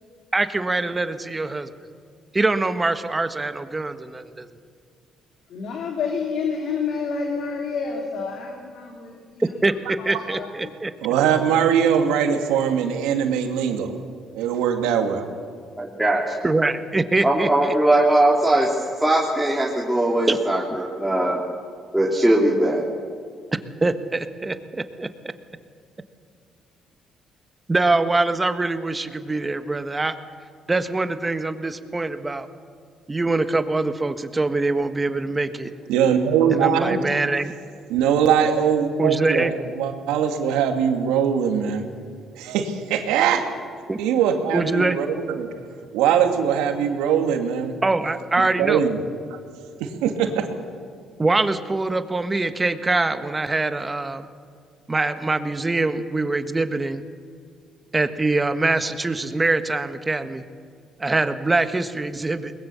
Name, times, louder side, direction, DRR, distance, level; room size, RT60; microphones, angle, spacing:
voice 1, 0.3-1.7 2.3-4.5 9.6-10.9 16.4-17.7 20.3-20.4 23.8-25.1 27.7-30.1 30.7-32.5 33.1-35.7 36.5-37.5 39.0-39.5 43.9-44.0 44.5-45.0 47.8-48.8 51.2-54.3 54.9-57.0 57.9-60.4 61.0-62.5, right 2 dB, 20° right, 9 dB, 1.5 m, -23 dB
voice 2, 5.5-9.1 10.0-10.5, left 5 dB, 70° left, 1 dB, 2.9 m, -28 dB
voice 3, 11.0-14.0 14.3-15.2 35.9-37.0 37.9-41.9 42.4-43.5 44.0-45.5 45.9-47.7 48.4-49.0 49.8-50.5, right 8 dB, 90° right, 5 dB, 2.1 m, -21 dB
voice 4, 15.8-16.4 17.2-21.4 21.9-22.8, right 1 dB, 5° right, -4 dB, 3.2 m, -20 dB
22.0 x 20.5 x 7.0 m, 2.2 s
supercardioid pair, 70°, 0 cm